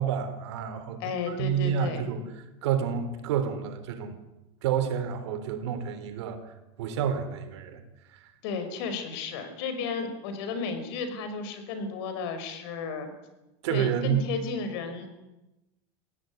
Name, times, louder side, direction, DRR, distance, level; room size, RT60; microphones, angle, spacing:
voice 1, 0.0-2.2 2.6-4.2 4.6-7.8 8.1-8.3 13.6-14.2, right 8 dB, 80° right, 9 dB, 3.8 m, -29 dB
voice 2, 1.0-2.1 8.4-13.1 13.7-15.1, left 5 dB, 65° left, 8 dB, 5.4 m, -33 dB
22.0 x 16.5 x 9.7 m, 1.0 s
supercardioid pair, 155°, 14 cm